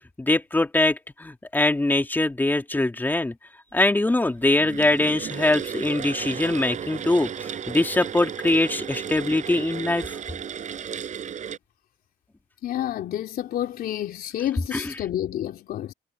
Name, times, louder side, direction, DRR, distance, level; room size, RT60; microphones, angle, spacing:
voice 1, 0.2-3.3 3.7-10.1 14.7-14.9, left 2 dB, 10° left, 3.3 m, -23 dB
sound 1, 4.4-11.6, right 8 dB, 45° right, 7.6 m, -34 dB
voice 2, 12.6-15.9, left 12 dB, 65° left, 3.9 m, -29 dB
cardioid pair, 110°, 17 cm